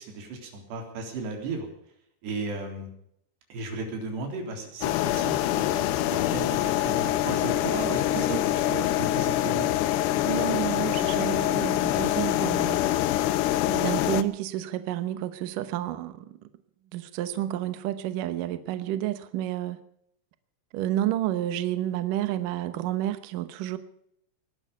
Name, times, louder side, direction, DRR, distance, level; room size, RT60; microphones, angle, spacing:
voice 1, 0.0-1.7 2.2-2.9 3.5-9.7, right 3 dB, 65° right, 5.5 m, -35 dB
sound 1, 4.8-14.2, left 14 dB, 80° left, 2.6 m, -25 dB
sound 2, 5.2-13.4, left 2 dB, 60° left, 6.1 m, -45 dB
voice 2, 8.1-8.6 10.2-12.8 13.7-16.4 16.9-19.8 20.7-23.8, right 13 dB, 85° right, 1.8 m, -30 dB
20.0 x 12.0 x 5.4 m
omnidirectional pair, 5.4 m